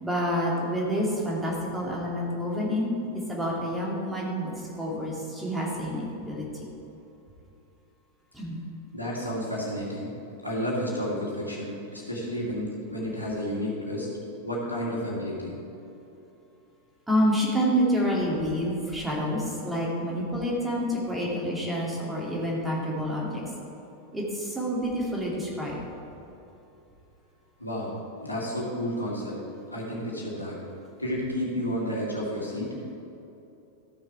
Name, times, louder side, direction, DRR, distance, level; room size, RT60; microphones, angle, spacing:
voice 1, 0.0-2.9 3.3-6.5 8.3-8.6 17.1-23.4 24.1-25.8, equal, 10° right, -4 dB, 2.4 m, -28 dB
voice 2, 8.9-10.1 10.4-14.1 14.4-15.5 27.6-27.9 28.2-29.4 29.7-30.6 31.0-32.8, equal, 85° left, -5 dB, 2.3 m, -31 dB
14.0 x 6.5 x 4.6 m, 2.9 s
figure-of-eight pair, 90°, 0 cm